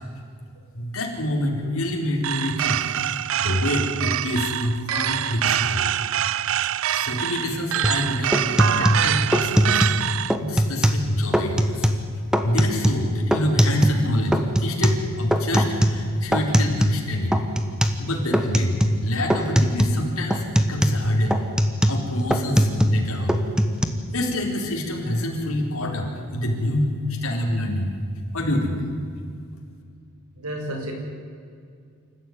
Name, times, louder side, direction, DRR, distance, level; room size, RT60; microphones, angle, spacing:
voice 1, 0.7-2.8 3.1-5.9 6.9-9.8 10.4-11.9 12.4-17.4 18.0-21.4 21.8-23.4 24.1-27.9 28.3-28.8, left 1 dB, 75° left, 1 dB, 4.2 m, -27 dB
sound 1, 2.2-10.4, right 10 dB, 65° right, 0.5 m, -25 dB
sound 2, 7.8-8.0 8.3-10.0 10.3-11.1 11.3-12.0 12.3-14.1 14.3-17.0 17.3-18.0 18.3-19.0 19.3-20.0 20.3-23.0 23.3-23.8, equal, 5° right, 1.4 m, -21 dB
voice 2, 30.3-30.9, right 1 dB, 85° right, 2 dB, 5.8 m, -32 dB
27.0 x 14.5 x 9.5 m, 2.3 s
head